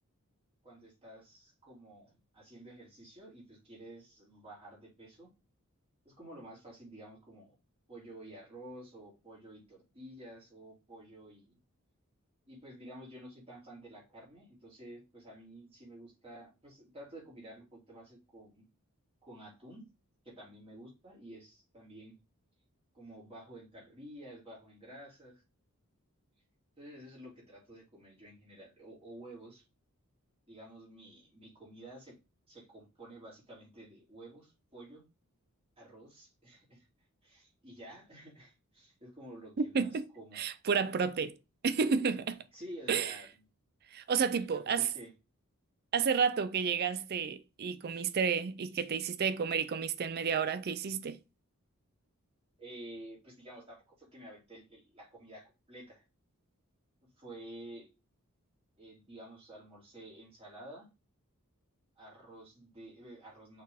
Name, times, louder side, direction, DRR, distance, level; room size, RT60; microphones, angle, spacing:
voice 1, 0.6-5.3 6.0-7.5 7.9-11.6 12.5-18.7 19.2-19.8 20.2-22.2 22.9-25.4 26.8-29.6 30.5-32.2 32.5-35.0 35.8-36.9 37.2-40.4 42.5-43.4 44.5-45.1 52.6-56.0 57.2-57.9 58.8-60.9 62.0-63.6, right 1 dB, 25° right, 3.7 m, -51 dB
voice 2, 39.7-40.1 40.4-41.4 41.6-42.4 42.9-43.1 43.9-44.9 45.9-51.2, right 6 dB, 45° right, 0.4 m, -31 dB
6.4 x 4.1 x 3.5 m
head